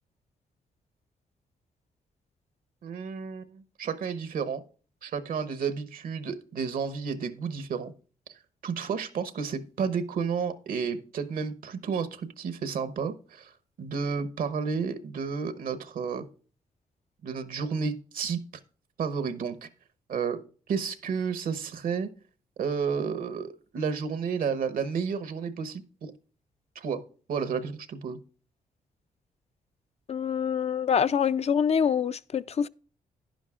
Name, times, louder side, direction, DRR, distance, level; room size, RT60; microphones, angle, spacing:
voice 1, 2.8-4.6 5.0-7.9 8.6-16.2 17.2-18.4 19.0-19.7 20.1-20.4 20.7-22.1 22.6-26.1 26.7-27.0 27.3-28.2, right 6 dB, 70° right, 1.0 m, -31 dB
voice 2, 30.1-32.7, left 7 dB, 45° left, 0.4 m, -25 dB
10.5 x 10.5 x 2.4 m
cardioid pair, 65°, 15 cm